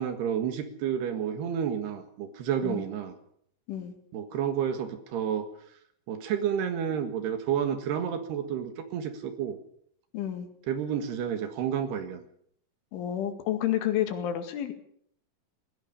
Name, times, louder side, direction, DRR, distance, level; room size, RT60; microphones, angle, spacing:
voice 1, 0.0-3.1 4.1-5.5 6.1-9.6 10.7-12.2, right 8 dB, 65° right, 9 dB, 3.5 m, -30 dB
voice 2, 10.1-10.5 12.9-14.7, left 11 dB, 80° left, 8 dB, 4.4 m, -30 dB
18.5 x 16.5 x 8.6 m, 0.67 s
omnidirectional pair, 5.5 m